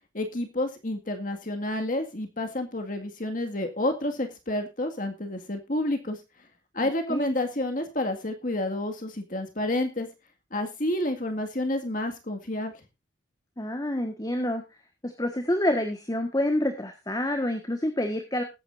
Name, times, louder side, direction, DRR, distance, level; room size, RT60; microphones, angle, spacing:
voice 1, 0.1-6.2 6.7-10.1 10.5-12.7, left 1 dB, 45° left, 5 dB, 2.0 m, -29 dB
voice 2, 6.8-7.3 13.6-14.6 15.0-18.4, left 1 dB, 20° left, 6 dB, 1.5 m, -28 dB
20.0 x 9.1 x 2.6 m, 0.26 s
head